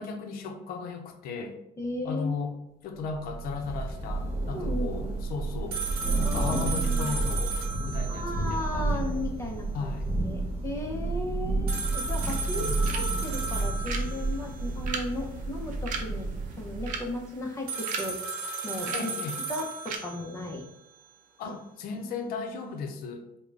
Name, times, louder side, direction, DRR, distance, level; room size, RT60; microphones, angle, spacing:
voice 1, 0.0-1.6 2.0-2.5 2.8-5.8 6.2-7.6 7.8-9.2 9.7-10.1 12.5-12.8 18.9-19.4 21.4-23.4, left 4 dB, 75° left, 4 dB, 0.6 m, -36 dB
voice 2, 1.8-2.5 4.5-5.2 6.2-7.2 8.1-10.0 10.2-16.3 16.6-18.2 18.6-19.1 19.5-20.6 21.4-21.5, left 1 dB, 20° left, -1 dB, 0.7 m, -35 dB
Thunder / Rain, 3.1-17.2, right 2 dB, 40° right, 1.2 m, -31 dB
sound 1, 5.7-8.8 9.0-9.1 11.7-14.7 17.7-20.7, right 4 dB, 90° right, 0.8 m, -35 dB
sound 2, 12.2-20.0, right 5 dB, 60° right, 0.6 m, -41 dB
3.7 x 2.2 x 3.3 m, 0.87 s
cardioid pair, 125°, 16 cm